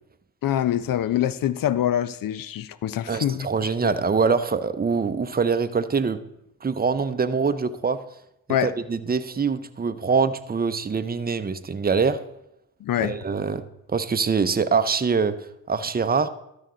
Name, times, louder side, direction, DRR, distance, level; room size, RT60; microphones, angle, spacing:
voice 1, 0.4-3.9 8.5-8.7 12.8-13.2, left 11 dB, 55° left, 0.6 m, -25 dB
voice 2, 3.1-6.2 6.6-8.0 8.6-12.2 13.0-13.6 13.9-15.3 15.7-16.3, right 5 dB, 25° right, 0.7 m, -24 dB
12.5 x 6.0 x 3.8 m
supercardioid pair, 45°, 39 cm